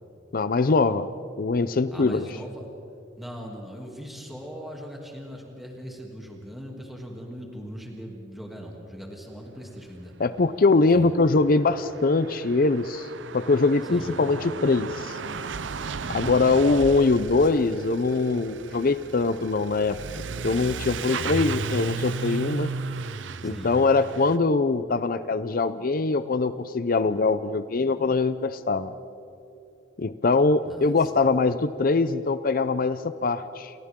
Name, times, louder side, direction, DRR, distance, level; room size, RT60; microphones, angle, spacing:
voice 1, 0.3-1.1 1.4-2.2 10.2-13.1 13.3-15.2 16.1-20.0 20.4-22.7 23.4-28.9 30.0-33.7, left 3 dB, 50° left, 13 dB, 0.6 m, -22 dB
voice 2, 1.9-2.6 3.2-10.1 10.9-11.1 13.8-14.3 16.0-16.7 23.4-23.8 30.6-31.1, equal, ahead, -2 dB, 2.8 m, -40 dB
Truck / Accelerating revving vroom, 10.7-10.8 11.0-24.4, right 4 dB, 90° right, 0.7 m, -35 dB
29.5 x 28.5 x 3.8 m, 2.7 s
head